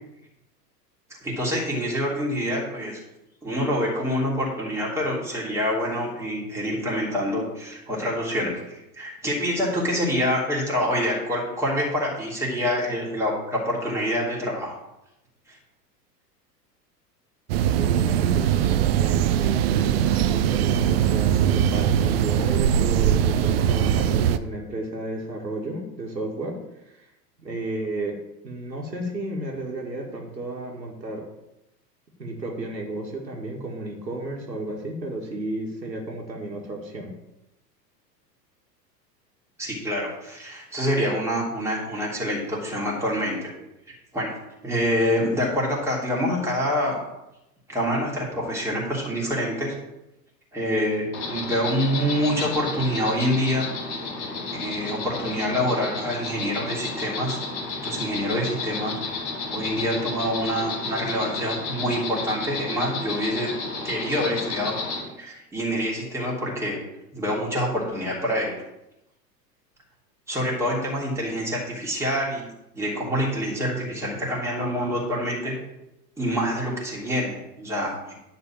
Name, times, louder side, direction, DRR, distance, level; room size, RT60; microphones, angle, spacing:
voice 1, 1.2-3.0 3.4-14.7 15.5-15.6 39.6-43.5 44.1-44.4 44.6-47.0 47.7-49.7 50.5-53.7 54.5-57.4 57.8-59.0 59.5-63.5 63.8-64.8 65.2-66.8 67.1-68.6 70.3-72.4 72.7-75.6 76.2-78.1, equal, 5° right, -4 dB, 3.1 m, -26 dB
sound 1, 17.5-24.4, right 9 dB, 40° right, 0.5 m, -21 dB
voice 2, 17.8-26.6 26.8-27.1 27.4-28.2 28.4-31.2 32.2-37.1, right 1 dB, 85° right, 0 dB, 2.1 m, -33 dB
Insect, 51.1-65.0, left 3 dB, 45° left, 3.4 m, -32 dB
10.5 x 4.2 x 7.4 m, 0.89 s
figure-of-eight pair, 95°, 49 cm